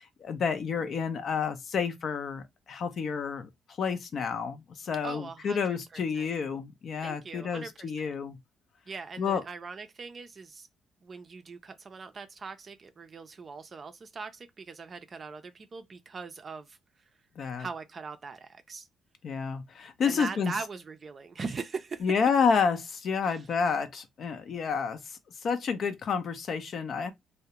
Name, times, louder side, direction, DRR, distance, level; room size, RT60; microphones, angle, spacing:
voice 1, 0.0-3.5 3.8-8.4 9.2-9.4 17.4-17.7 19.2-20.5 22.0-27.1, left 6 dB, 60° left, 0.4 m, -30 dB
voice 2, 5.0-6.3 7.0-8.2 8.9-10.7 11.0-16.8 17.6-18.9 20.1-22.0 23.2-23.4, right 4 dB, 40° right, 0.4 m, -41 dB
2.3 x 2.0 x 2.8 m
cardioid pair, 90°, 0 cm